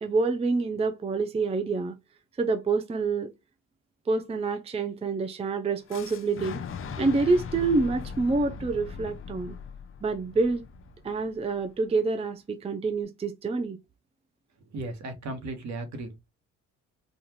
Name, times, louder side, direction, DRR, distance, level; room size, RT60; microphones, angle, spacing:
voice 1, 0.0-2.0 2.4-3.3 4.1-6.6 7.0-9.6 10.0-10.7 11.0-13.8, right 3 dB, 20° right, 0.5 m, -27 dB
Fire / Explosion, 5.9-11.8, left 5 dB, 45° left, 0.7 m, -39 dB
voice 2, 14.7-16.3, right 2 dB, 65° right, 1.2 m, -36 dB
4.0 x 2.4 x 2.9 m
cardioid pair, 90°, 30 cm